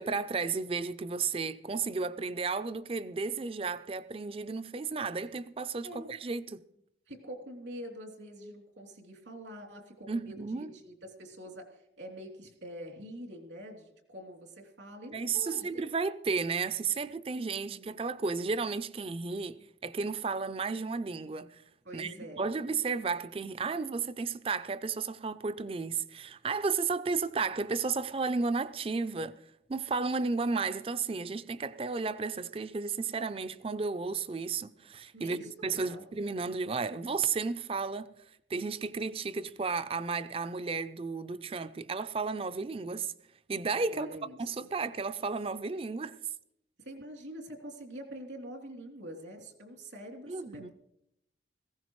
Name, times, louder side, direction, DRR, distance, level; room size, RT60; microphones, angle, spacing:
voice 1, 0.0-6.6 10.1-10.7 15.1-21.6 21.9-29.3 29.7-38.1 38.5-43.1 43.5-44.1 44.4-46.2 50.3-50.7, right 4 dB, 30° right, 0.4 m, -33 dB
voice 2, 5.8-6.2 7.1-15.8 17.6-18.0 21.8-22.5 35.1-36.0 43.9-44.7 46.8-50.7, equal, 90° right, 3.1 m, -45 dB
18.5 x 16.0 x 3.1 m
head